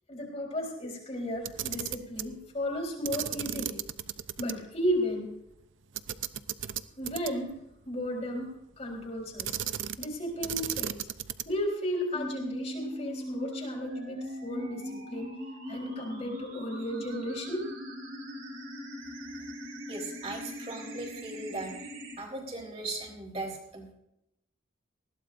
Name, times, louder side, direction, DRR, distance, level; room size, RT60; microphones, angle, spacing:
voice 1, 0.1-3.8 4.4-5.3 7.0-7.6 7.9-9.6 10.0-11.0 11.5-15.4 15.7-17.8, equal, 35° left, 0 dB, 3.8 m, -34 dB
Camera, 1.4-2.3 3.0-4.5 4.9-5.0 5.9-7.5 9.4-10.1 10.4-11.6, right 11 dB, 70° right, 0.6 m, -35 dB
sound 1, 12.1-22.1, equal, 90° right, 4.7 m, -40 dB
voice 2, 19.9-21.7 22.2-23.9, right 2 dB, 30° right, -1 dB, 3.7 m, -38 dB
20.0 x 15.5 x 2.6 m, 0.82 s
head